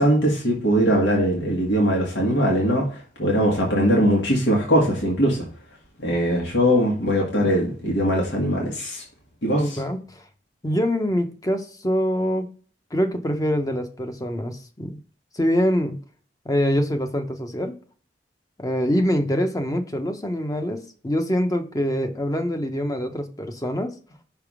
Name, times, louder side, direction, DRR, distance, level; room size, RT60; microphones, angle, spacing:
voice 1, 0.0-2.9 3.2-5.4 6.0-9.0 9.4-9.8, equal, 85° left, 1.6 m, -21 dB
voice 2, 9.6-10.0 10.6-12.4 12.9-15.0 15.3-16.0 16.5-17.7 18.6-23.9, equal, 20° left, 0.8 m, -24 dB
5.8 x 3.5 x 4.8 m
head